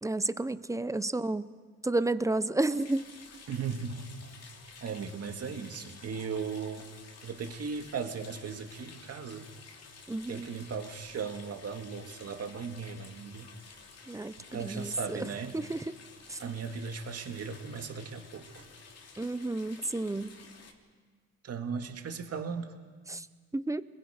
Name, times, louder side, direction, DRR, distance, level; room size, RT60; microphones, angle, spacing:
voice 1, 0.0-1.5 1.8-3.1 10.1-10.5 14.1-15.3 15.5-15.8 16.3-16.4 19.2-20.4 23.1-23.3 23.5-23.8, right 2 dB, 10° right, 14 dB, 0.7 m, -31 dB
sound 1, 2.7-20.7, left 4 dB, 55° left, 2.8 m, -52 dB
voice 2, 3.5-4.1 4.8-6.9 7.2-9.5 10.3-13.5 14.5-15.6 16.4-18.6 21.4-22.7, right 6 dB, 55° right, 5 dB, 2.1 m, -37 dB
28.0 x 21.0 x 5.1 m, 1.5 s
cardioid pair, 90°, 30 cm